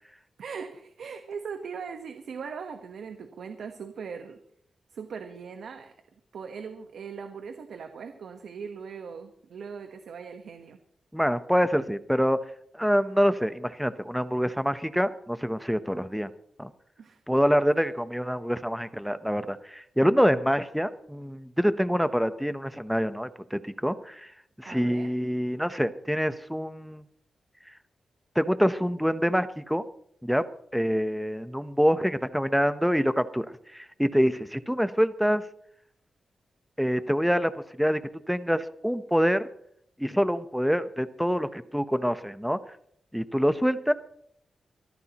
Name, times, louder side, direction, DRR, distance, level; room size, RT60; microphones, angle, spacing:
voice 1, 0.4-4.4 4.9-5.9 6.3-10.8 17.0-17.2 24.6-25.1, right 6 dB, 80° right, 6 dB, 1.2 m, -40 dB
voice 2, 11.1-12.4 12.7-16.3 16.6-16.7 17.3-24.3 24.6-27.0 28.3-29.8 30.2-30.4 30.7-35.4 36.8-37.5 37.8-38.0 38.3-39.5 40.0-42.6 43.1-43.9, equal, ahead, 11 dB, 0.9 m, -26 dB
24.5 x 14.0 x 3.0 m, 0.68 s
wide cardioid pair, 115°, 0 cm